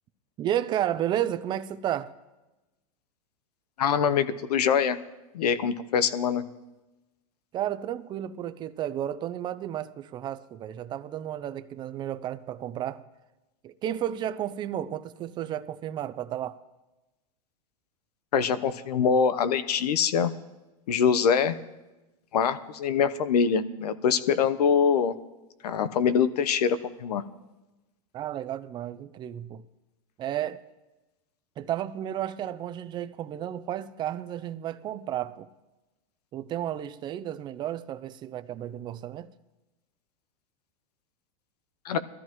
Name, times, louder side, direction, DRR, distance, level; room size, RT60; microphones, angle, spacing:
voice 1, 0.4-2.1 7.5-13.0 13.6-16.6 28.1-29.6 30.2-30.6 31.6-35.5 36.3-39.3, right 11 dB, 25° right, 0.5 m, -32 dB
voice 2, 3.8-5.0 5.3-6.4 18.3-20.3 20.9-21.6 22.3-25.1 25.6-27.2 41.8-42.0, left 7 dB, 90° left, 0.9 m, -24 dB
21.5 x 13.5 x 3.0 m
supercardioid pair, 145°, 20 cm